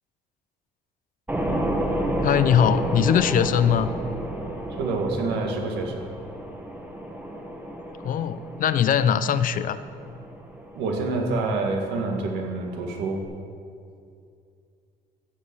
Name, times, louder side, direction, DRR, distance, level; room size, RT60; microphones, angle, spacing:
sound 1, 1.3-13.2, right 1 dB, 10° right, 1.3 m, -31 dB
voice 1, 2.2-3.9 8.0-9.8, left 8 dB, 55° left, 13 dB, 0.6 m, -21 dB
voice 2, 4.8-6.1 10.8-13.2, right 3 dB, 85° right, 1 dB, 2.1 m, -27 dB
15.5 x 6.4 x 7.2 m, 2.4 s
cardioid pair, 110°, 17 cm